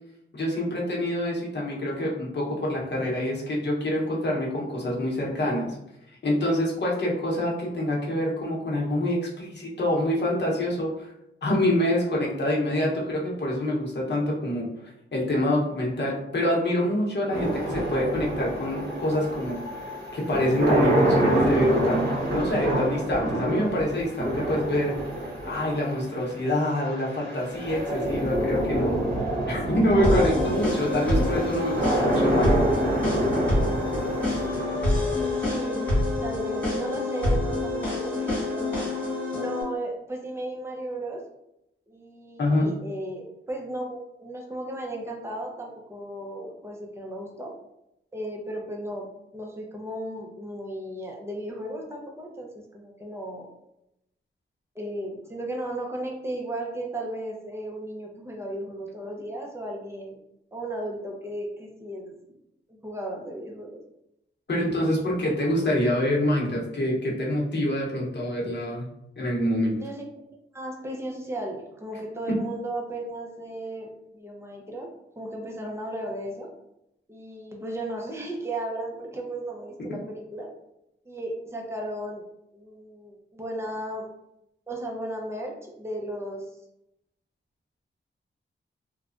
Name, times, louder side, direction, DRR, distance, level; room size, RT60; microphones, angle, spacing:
voice 1, 0.3-5.8 6.2-11.1 11.4-14.6 15.1-19.6 20.1-24.9 25.5-29.0 29.5-32.7 42.4-42.7 64.5-68.9 69.2-69.8 72.3-72.4, left 1 dB, 55° left, -3 dB, 0.9 m, -26 dB
sound 1, 17.3-36.3, right 1 dB, 50° right, 1.3 m, -27 dB
sound 2, 30.0-39.6, left 2 dB, 10° left, 1.4 m, -27 dB
voice 2, 35.2-41.2 41.9-47.5 48.1-49.1 49.3-53.5 54.7-60.2 60.5-62.4 62.7-63.8 69.7-70.1 70.5-74.9 75.2-76.5 77.1-80.5 81.0-82.2 82.5-84.1 84.7-86.4, right 1 dB, 10° right, -1 dB, 0.7 m, -35 dB
3.2 x 2.2 x 2.5 m, 0.83 s
wide cardioid pair, 75°, 21 cm